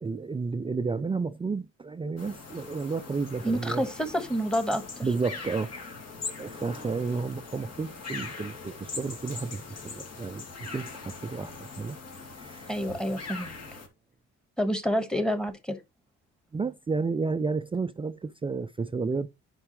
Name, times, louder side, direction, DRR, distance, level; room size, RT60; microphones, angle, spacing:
voice 1, 0.0-3.8 5.0-6.0 6.4-12.0 12.4-12.7 16.5-19.3, right 4 dB, 20° right, 0.4 m, -32 dB
sound 1, 2.2-13.9, left 4 dB, 55° left, 2.1 m, -41 dB
voice 2, 3.4-4.8 12.7-13.5 14.6-15.8, equal, 5° left, 1.4 m, -28 dB
9.8 x 4.8 x 3.1 m
cardioid pair, 90°, 30 cm